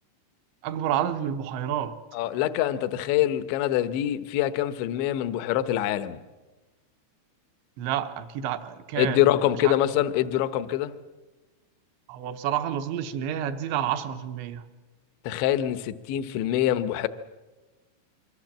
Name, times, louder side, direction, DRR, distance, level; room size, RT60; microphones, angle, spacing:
voice 1, 0.6-2.0 7.8-9.8 12.1-14.7, right 10 dB, 75° right, 9 dB, 3.2 m, -29 dB
voice 2, 2.1-6.2 9.0-10.9 15.3-17.1, left 12 dB, 75° left, 12 dB, 3.0 m, -25 dB
25.5 x 24.5 x 7.5 m, 1.2 s
omnidirectional pair, 5.8 m